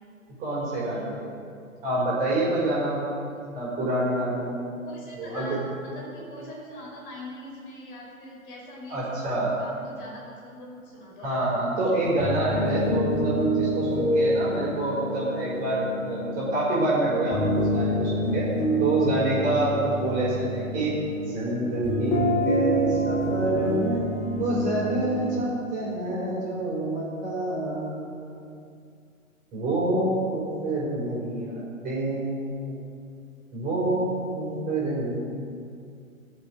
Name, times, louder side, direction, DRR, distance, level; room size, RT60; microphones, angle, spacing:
voice 1, 0.4-1.3 1.8-3.1 3.5-4.6 5.2-5.6 8.9-9.5 11.2-18.5 18.8-24.1 24.3-28.5 29.5-33.0 33.5-35.2, right 1 dB, 20° right, -7 dB, 5.2 m, -27 dB
voice 2, 4.8-11.4 12.2-12.4, left 1 dB, 35° left, -3 dB, 5.0 m, -42 dB
sound 1, 12.1-25.4, equal, 15° left, 2.2 m, -28 dB
20.5 x 7.9 x 7.8 m, 2.3 s
figure-of-eight pair, 125°, 42 cm